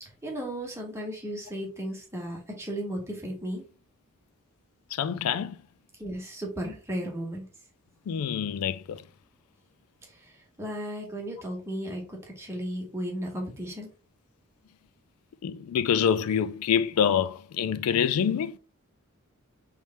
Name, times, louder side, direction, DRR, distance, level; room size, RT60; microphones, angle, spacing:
voice 1, 0.0-3.6 6.0-7.5 10.0-10.3 10.6-13.9, equal, 10° right, 1.2 m, -35 dB
voice 2, 4.9-5.6 8.1-9.0 15.4-18.6, left 8 dB, 80° left, 0.3 m, -26 dB
3.3 x 3.2 x 4.1 m
head